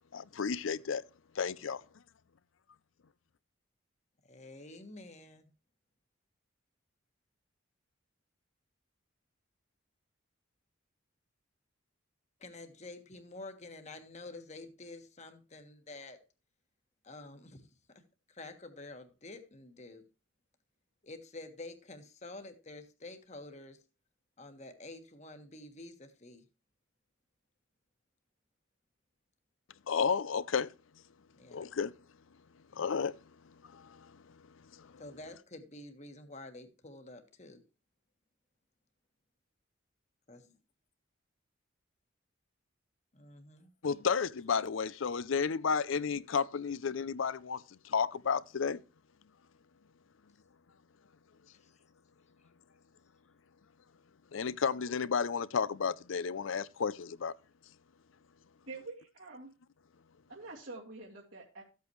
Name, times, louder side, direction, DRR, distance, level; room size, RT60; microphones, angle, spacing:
voice 1, 0.1-1.0 1.4-1.8 29.9-30.7 31.5-31.9 32.7-33.2 33.7-34.1 34.7-34.9 43.8-48.8 54.3-57.3, left 6 dB, 75° left, 0.5 m, -32 dB
voice 2, 4.3-5.5 12.4-16.2 17.0-18.0 18.3-20.0 21.0-23.8 24.4-26.4 31.4-31.7 35.0-37.6 40.3-40.5 43.1-43.7 51.5-51.8, left 2 dB, 35° left, 1.5 m, -49 dB
voice 3, 58.7-59.5 60.3-61.6, right 3 dB, 80° right, 2.4 m, -46 dB
14.0 x 8.3 x 3.1 m
head